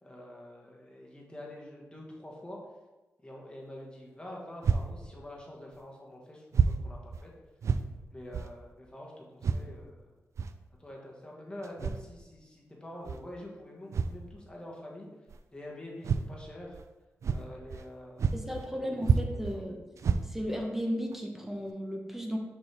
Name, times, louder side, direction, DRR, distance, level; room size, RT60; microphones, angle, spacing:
voice 1, 0.0-2.6 3.2-7.3 8.1-10.1 10.8-15.1 15.5-16.8 17.3-19.8, left 1 dB, 20° left, -3 dB, 1.7 m, -46 dB
sound 1, 4.6-4.9 5.7-5.8 6.5-6.8 7.1-7.3 7.6-7.9 8.3-8.5 9.4-9.6 10.4-10.5 11.6-12.0 13.1-13.2 13.9-14.2 15.3-15.4 16.0-16.3 16.7-16.9 17.2-17.9 18.2-18.7 19.0-19.6 20.0-20.6 21.1-21.2 21.7-21.8, right 6 dB, 70° right, 0.3 m, -28 dB
voice 2, 18.3-19.8 20.2-22.4, equal, 5° right, 2 dB, 1.1 m, -34 dB
5.9 x 4.5 x 3.5 m, 1.1 s
cardioid pair, 55°, 5 cm